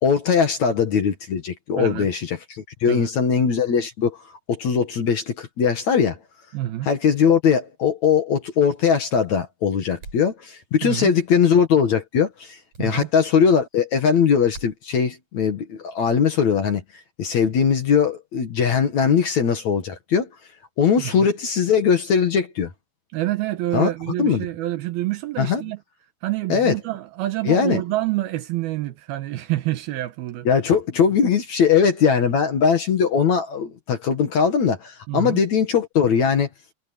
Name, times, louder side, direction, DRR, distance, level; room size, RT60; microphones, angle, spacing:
voice 1, 0.0-4.2 4.5-6.2 6.8-16.8 17.2-20.3 20.8-22.7 23.7-23.9 24.2-24.5 25.4-25.6 26.5-26.7 27.5-27.8 30.4-36.5, left 6 dB, 50° left, 2.5 m, -20 dB
voice 2, 1.8-2.1 2.9-3.1 6.5-6.9 10.8-11.1 12.8-13.1 21.0-21.3 23.1-25.8 26.2-30.5 35.1-35.4, right 15 dB, 75° right, 2.7 m, -27 dB
sound 1, 10.0-10.3 12.7-12.9 14.5-14.8, right 3 dB, 40° right, 7.8 m, -41 dB
omnidirectional pair, 4.9 m